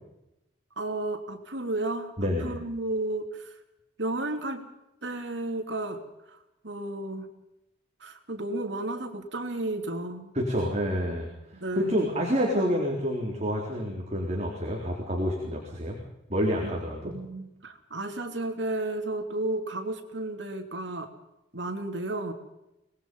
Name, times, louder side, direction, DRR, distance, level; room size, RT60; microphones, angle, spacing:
voice 1, 0.8-3.5 4.0-4.7 5.0-6.0 6.3-6.4 6.6-7.3 8.0-10.3 11.5-12.0 16.6-16.7 17.0-21.1 21.5-22.3, right 2 dB, 75° right, 5 dB, 3.0 m, -33 dB
voice 2, 2.2-2.5 10.3-11.3 11.7-16.0 16.3-17.1, equal, 35° right, -1 dB, 4.1 m, -28 dB
25.0 x 20.0 x 5.5 m, 0.89 s
head